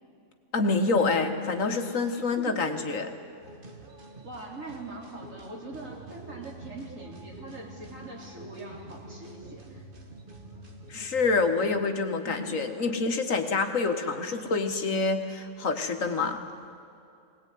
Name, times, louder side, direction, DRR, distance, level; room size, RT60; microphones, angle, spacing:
voice 1, 0.5-3.1 10.9-16.5, left 3 dB, 80° left, 6 dB, 1.9 m, -27 dB
voice 2, 2.2-2.8 4.2-9.8 12.2-12.9, right 2 dB, 80° right, -2 dB, 4.4 m, -42 dB
sound 1, 3.4-11.1, right 3 dB, 40° right, 1.9 m, -48 dB
sound 2, 6.0-11.7, right 1 dB, 25° right, 5.3 m, -51 dB
20.0 x 19.0 x 9.4 m, 2.5 s
omnidirectional pair, 1.4 m